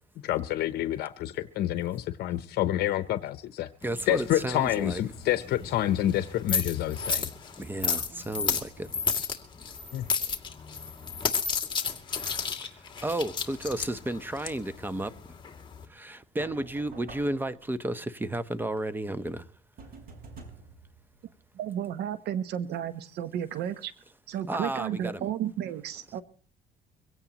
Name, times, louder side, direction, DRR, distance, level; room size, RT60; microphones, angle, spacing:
voice 1, 0.2-3.7 4.1-7.3 9.9-10.1, left 13 dB, 70° left, 0.8 m, -28 dB
sound 1, 3.8-15.8, left 5 dB, 25° left, 2.4 m, -33 dB
voice 2, 3.8-5.0 7.6-8.9 13.0-15.1 15.9-19.4 24.5-25.3, right 1 dB, 10° right, 1.0 m, -32 dB
sound 2, 5.1-7.5 8.1-9.3 16.4-18.0 19.8-21.8, right 3 dB, 60° right, 4.9 m, -51 dB
voice 3, 21.5-23.9 24.3-26.2, right 10 dB, 75° right, 1.0 m, -33 dB
23.5 x 17.0 x 3.0 m
cardioid pair, 110°, 17 cm